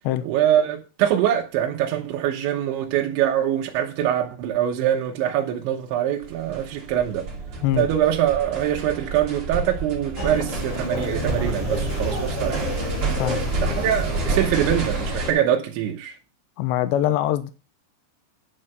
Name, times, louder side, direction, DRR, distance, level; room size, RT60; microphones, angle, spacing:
voice 1, 0.2-7.3 7.8-12.8 13.6-16.2, right 11 dB, 80° right, 3.4 m, -23 dB
sound 1, 6.2-15.3, right 3 dB, 35° right, 2.5 m, -29 dB
Human voice, 10.2-15.4, left 2 dB, 35° left, 3.3 m, -32 dB
voice 2, 13.2-13.8 16.6-17.5, left 12 dB, 80° left, 2.9 m, -23 dB
11.0 x 5.7 x 6.5 m
omnidirectional pair, 5.4 m